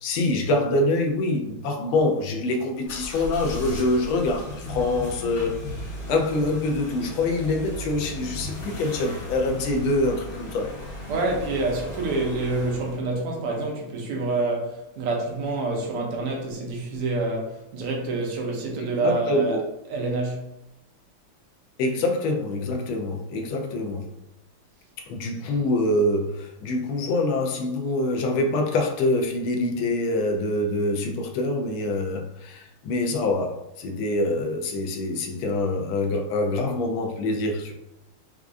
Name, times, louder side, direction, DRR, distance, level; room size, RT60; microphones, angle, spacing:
voice 1, 0.0-10.7 18.9-19.6 21.8-24.1 25.0-37.7, left 2 dB, 75° left, 2 dB, 1.3 m, -25 dB
sound 1, 2.9-13.0, left 1 dB, 50° left, 1.3 m, -36 dB
voice 2, 11.1-19.6 19.9-20.4, right 2 dB, 85° right, 0 dB, 1.7 m, -27 dB
4.6 x 2.4 x 2.5 m, 0.87 s
omnidirectional pair, 2.4 m